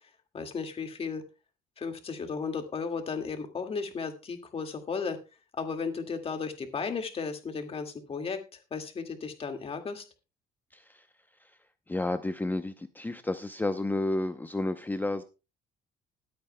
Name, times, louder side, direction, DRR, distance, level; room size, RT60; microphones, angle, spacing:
voice 1, 0.3-1.2 1.8-5.2 5.6-8.4 8.7-10.0, left 5 dB, 35° left, 6 dB, 2.0 m, -34 dB
voice 2, 10.7-11.1 11.4-11.5 11.9-15.2, left 2 dB, 10° left, 9 dB, 0.7 m, -31 dB
19.5 x 8.7 x 2.2 m, 0.29 s
cardioid pair, 110°, 17 cm